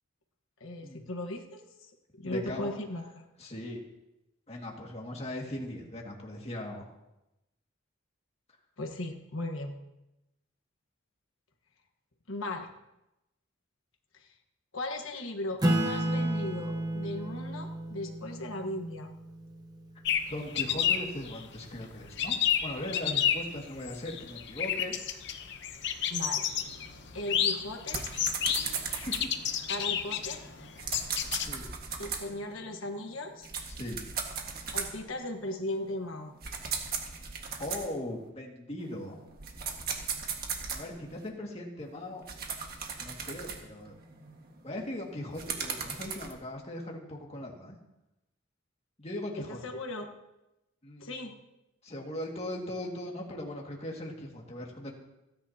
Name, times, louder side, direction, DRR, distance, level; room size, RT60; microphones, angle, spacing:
voice 1, 0.6-3.3 8.8-9.8 12.3-12.7 14.1-14.3 14.7-19.1 26.1-26.5 27.1-28.0 29.7-30.4 32.0-33.5 34.7-36.3 49.5-50.1 51.0-51.3, left 1 dB, 85° left, 4 dB, 1.4 m, -37 dB
voice 2, 2.2-2.7 3.4-3.8 4.5-6.9 20.3-24.9 31.3-31.7 33.7-34.0 37.6-39.2 40.7-42.2 43.0-43.9 44.6-47.8 49.0-49.6 50.8-51.3 51.8-54.9, left 1 dB, 30° left, -1 dB, 2.1 m, -39 dB
Acoustic guitar / Strum, 15.6-20.6, right 1 dB, 20° right, 1.1 m, -32 dB
sound 1, 20.0-31.5, left 9 dB, 60° left, 0.9 m, -31 dB
sound 2, 26.5-38.3 38.8-41.3 41.8-46.3, right 6 dB, 50° right, 1.7 m, -39 dB
29.5 x 10.5 x 2.9 m, 0.94 s
head